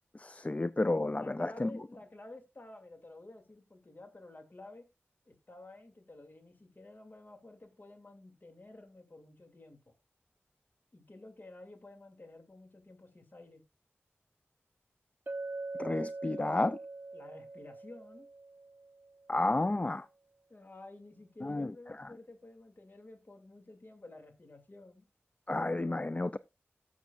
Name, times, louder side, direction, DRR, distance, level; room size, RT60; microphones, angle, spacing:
voice 1, 0.1-1.7 15.8-16.8 19.3-20.1 21.4-21.7 22.0-22.1 25.5-26.4, left 2 dB, 30° left, 0.4 m, -31 dB
voice 2, 1.1-4.8 5.2-9.9 10.9-13.6 17.1-18.3 20.5-25.0, left 2 dB, 45° left, 2.7 m, -52 dB
Chink clink, 15.3-19.3, right 3 dB, 45° right, 0.7 m, -42 dB
16.5 x 7.2 x 2.5 m
wide cardioid pair, 60°, 5 cm